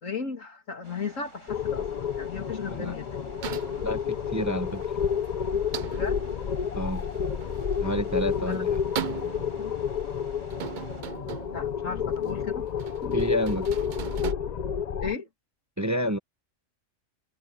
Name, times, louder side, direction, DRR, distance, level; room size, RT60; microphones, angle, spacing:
voice 1, 0.0-3.3 5.9-6.2 8.4-8.6 9.3-9.7 11.5-12.7 13.0-13.2 15.0-15.3, left 5 dB, 75° left, 3.0 m, -35 dB
sound 1, 0.8-11.0, right 2 dB, 70° right, 5.8 m, -52 dB
sound 2, 1.5-15.1, left 7 dB, 45° left, 0.5 m, -30 dB
sound 3, 3.4-14.3, right 9 dB, 50° right, 0.6 m, -40 dB
voice 2, 3.8-4.8 6.7-7.1 7.8-8.8 13.1-13.7 15.8-16.2, equal, 15° right, 0.8 m, -29 dB
omnidirectional pair, 1.4 m